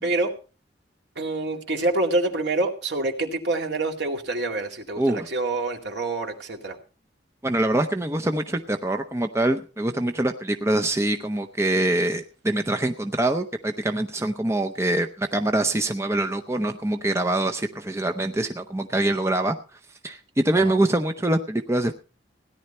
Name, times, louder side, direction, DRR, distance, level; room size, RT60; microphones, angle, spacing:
voice 1, 0.0-0.3 1.2-6.8 20.7-20.8, right 2 dB, 65° right, 3 dB, 2.3 m, -26 dB
voice 2, 5.0-5.3 7.4-19.6 20.0-21.9, right 1 dB, 15° right, 6 dB, 0.6 m, -24 dB
17.0 x 11.0 x 4.3 m, 0.35 s
head